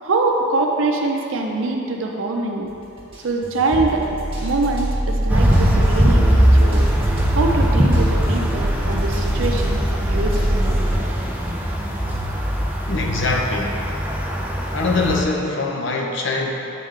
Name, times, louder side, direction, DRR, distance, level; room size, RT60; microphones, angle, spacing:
voice 1, 0.0-2.7 3.2-4.1 4.4-6.9 7.3-10.8, right 2 dB, 65° right, 1 dB, 0.6 m, -23 dB
sound 1, 2.6-11.0, equal, 25° right, 1.2 m, -24 dB
sound 2, 5.3-15.2, equal, 10° right, 0.4 m, -20 dB
voice 2, 12.9-13.9 14.7-16.5, left 3 dB, 60° left, 1 dB, 0.6 m, -23 dB
8.3 x 3.2 x 3.6 m, 3.0 s
head